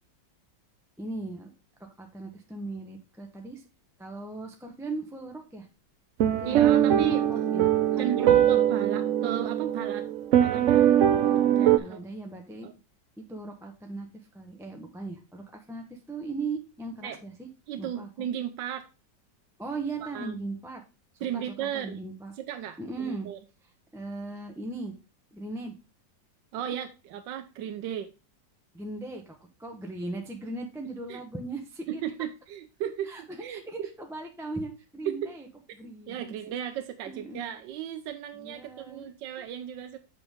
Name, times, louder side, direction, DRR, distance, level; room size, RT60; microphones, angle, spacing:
voice 1, 1.0-1.5 2.0-3.6 4.0-5.7 6.3-7.6 7.9-8.4 11.8-12.7 13.2-14.1 14.3-17.5 17.8-18.3 19.6-20.8 21.3-22.3 22.8-23.3 23.9-24.9 25.3-25.8 26.7-26.8 28.7-32.0 33.1-35.5 35.7-36.4 37.1-37.5 38.3-39.1 39.4-39.5, right 2 dB, ahead, 2 dB, 0.7 m, -38 dB
sound 1, 6.2-11.8, right 11 dB, 65° right, 0.8 m, -22 dB
voice 2, 6.4-7.5 8.0-10.1 10.4-10.9 11.6-12.0 12.6-12.7 17.0-17.2 17.7-18.9 20.0-20.3 21.2-22.0 22.4-23.4 26.5-28.1 31.1-31.2 31.9-33.9 35.1-35.3 36.1-40.0, right 10 dB, 80° right, 7 dB, 1.3 m, -35 dB
7.9 x 5.7 x 3.5 m, 0.30 s
omnidirectional pair, 1.9 m